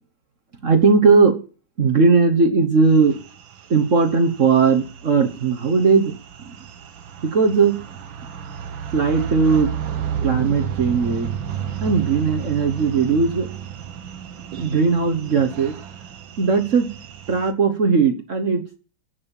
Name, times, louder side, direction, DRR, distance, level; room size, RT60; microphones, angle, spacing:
voice 1, 0.6-1.4 1.8-3.2 3.7-6.6 7.2-7.8 8.9-9.7 10.2-13.5 14.5-15.8 16.4-16.9 17.3-18.8, right 4 dB, 45° right, 4 dB, 1.4 m, -18 dB
sound 1, 2.9-17.5, right 8 dB, 85° right, 1.8 m, -32 dB
10.5 x 7.4 x 7.1 m, 0.36 s
omnidirectional pair, 2.1 m